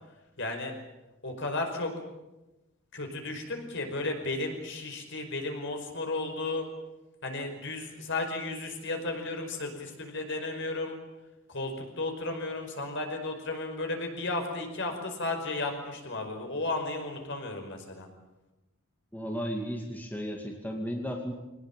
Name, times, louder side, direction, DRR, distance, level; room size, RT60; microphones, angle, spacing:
voice 1, 0.4-0.7 1.2-1.9 2.9-6.7 7.2-11.0 11.5-18.1, left 2 dB, 55° left, 4 dB, 5.2 m, -34 dB
voice 2, 19.1-21.3, equal, 10° left, 1 dB, 2.3 m, -34 dB
23.5 x 19.0 x 9.0 m, 1.0 s
head